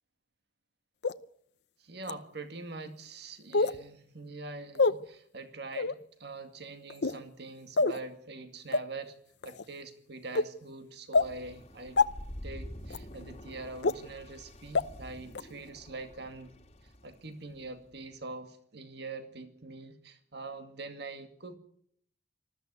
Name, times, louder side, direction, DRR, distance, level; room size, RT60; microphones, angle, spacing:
pop mouth sounds, 1.0-1.1 2.0-2.1 3.5-3.8 4.7-4.9 5.7-5.9 6.9-7.2 7.8-8.0 8.7-8.8 9.4-9.6 10.3-10.4 11.1-11.3 12.0-12.1 12.9-13.0 13.8-13.9 14.7-14.8 15.3-15.4, left 3 dB, 65° left, 0.8 m, -25 dB
voice 1, 1.8-9.1 9.4-12.0 12.4-16.5 17.0-21.6, right 3 dB, 60° right, 7 dB, 2.2 m, -44 dB
sound 1, 11.1-18.1, equal, 35° left, 2.0 m, -48 dB
20.0 x 14.0 x 9.5 m, 0.66 s
head